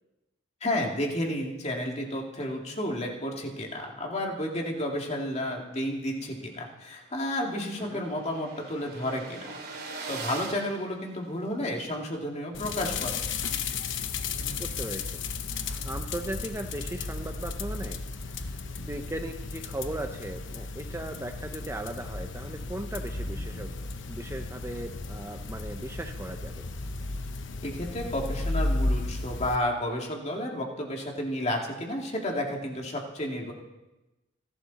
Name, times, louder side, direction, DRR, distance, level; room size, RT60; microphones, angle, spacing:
voice 1, 0.6-9.5 10.1-13.1 27.6-33.5, left 1 dB, 35° left, 1 dB, 2.5 m, -31 dB
sound 1, 6.2-6.3 6.6-6.7 6.8-11.7, right 3 dB, 50° right, 3.2 m, -42 dB
sound 2, 12.5-29.6, left 3 dB, 65° left, 1.0 m, -34 dB
voice 2, 14.6-15.2 15.8-18.0 18.3-23.8 24.1-26.6, right 1 dB, 15° right, 5 dB, 0.7 m, -37 dB
27.0 x 11.5 x 4.2 m, 1.0 s
head